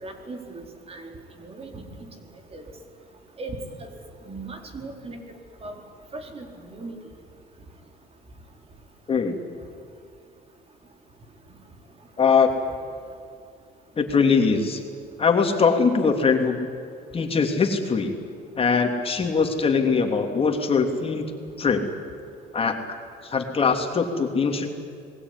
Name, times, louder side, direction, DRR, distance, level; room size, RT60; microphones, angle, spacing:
voice 1, 0.0-1.8 2.5-2.6 3.4-3.9 4.3-5.2 5.6-5.7 6.1-6.9, right 2 dB, 35° right, 4 dB, 4.4 m, -38 dB
voice 2, 9.1-9.4 12.2-12.5 14.0-14.8 15.2-16.7 17.1-18.1 18.6-21.3 21.6-21.8 22.5-22.8 23.2-24.7, left 5 dB, 35° left, 4 dB, 3.0 m, -21 dB
27.0 x 21.0 x 9.9 m, 2.4 s
cardioid pair, 110°, 17 cm